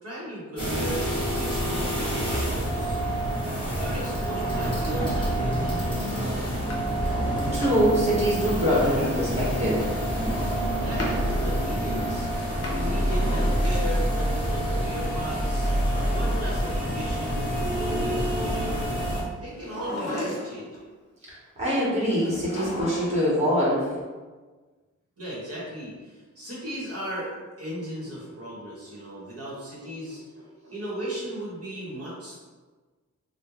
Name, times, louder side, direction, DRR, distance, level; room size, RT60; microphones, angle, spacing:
voice 1, 0.0-3.0 3.5-6.7 10.8-12.3 12.7-15.7 16.1-18.9 19.4-20.7 25.2-32.4, right 1 dB, 50° right, -7 dB, 1.0 m, -36 dB
sound 1, 0.6-19.2, right 1 dB, 15° left, 1.1 m, -27 dB
Drawer open or close, 6.5-8.1 9.7-11.2 12.4-14.2 15.4-17.1 19.5-20.8 22.2-23.3 23.6-23.7, left 1 dB, 50° left, 0.7 m, -36 dB
voice 2, 7.0-9.9 21.3-24.0, equal, 20° right, -9 dB, 1.0 m, -24 dB
3.1 x 2.1 x 3.6 m, 1.4 s
wide cardioid pair, 155°, 30 cm